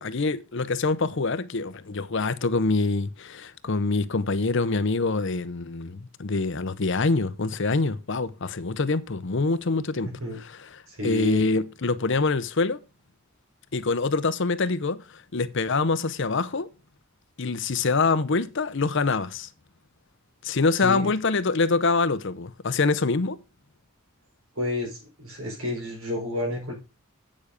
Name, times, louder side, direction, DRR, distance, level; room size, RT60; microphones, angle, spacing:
voice 1, 0.0-10.1 10.7-12.8 13.7-16.7 17.4-19.5 20.4-23.4, left 3 dB, 60° left, 0.8 m, -25 dB
voice 2, 10.9-11.5 20.8-21.1 24.5-26.7, left 2 dB, 85° right, 4.8 m, -30 dB
8.5 x 7.0 x 5.1 m
head